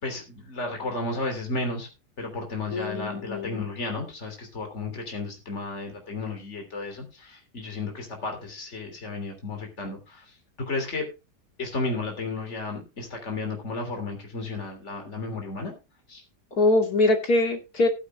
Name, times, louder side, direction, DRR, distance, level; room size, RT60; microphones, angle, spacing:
voice 1, 0.0-1.9 2.2-11.1 11.6-15.7 16.1-16.2, left 3 dB, 45° left, 3 dB, 3.7 m, -33 dB
voice 2, 2.7-3.6 16.6-17.9, left 2 dB, 70° left, 5 dB, 3.1 m, -23 dB
18.0 x 10.0 x 2.3 m, 0.27 s
omnidirectional pair, 1.7 m